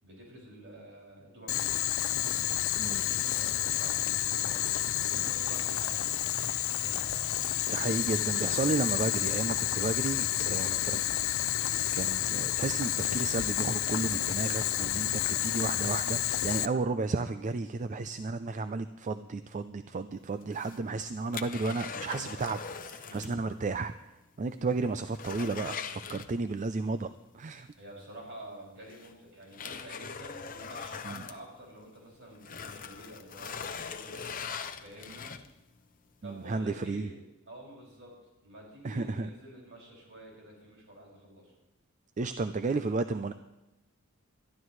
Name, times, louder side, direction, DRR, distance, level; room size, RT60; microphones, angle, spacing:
voice 1, 0.0-1.7 2.7-6.0 6.8-7.5 8.0-8.1 10.4-10.8 23.1-23.4 27.8-34.3 34.7-35.3 36.2-37.2 37.5-38.2 38.4-41.5, right 1 dB, 60° right, -3 dB, 6.1 m, -49 dB
Boiling, 1.5-16.6, left 13 dB, 65° left, 0.5 m, -30 dB
voice 2, 7.7-11.0 11.9-23.9 24.4-27.7 31.0-31.2 36.2-37.1 38.8-39.3 42.2-43.3, right 3 dB, 35° right, 11 dB, 0.4 m, -33 dB
sound 1, 20.4-23.4 23.7-23.8 24.2-24.3 24.7-26.7 28.1-28.2 28.9-32.0 32.3-35.7 36.2-36.3, left 6 dB, 40° left, 0.8 m, -41 dB
21.5 x 13.0 x 3.2 m, 1.0 s
head